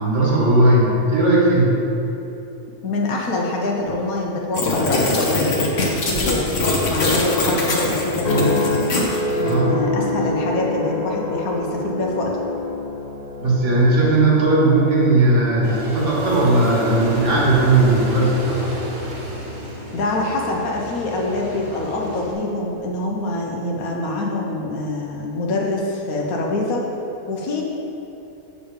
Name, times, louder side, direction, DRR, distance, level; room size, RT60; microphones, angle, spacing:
voice 1, 0.0-1.7 9.4-9.8 13.4-18.6, right 2 dB, 60° right, -5 dB, 1.9 m, -17 dB
voice 2, 2.8-6.5 6.8-8.7 9.4-12.4 19.9-26.9 27.3-27.6, left 2 dB, 85° left, -1 dB, 1.5 m, -25 dB
sound 1, 4.5-9.5, left 2 dB, 60° left, 1.3 m, -22 dB
sound 2, 8.2-22.7 23.3-23.7, left 2 dB, 35° left, 1.3 m, -29 dB
Aircraft, 15.6-22.3, right 1 dB, 90° right, 1.6 m, -31 dB
7.0 x 6.8 x 3.7 m, 3.0 s
omnidirectional pair, 1.5 m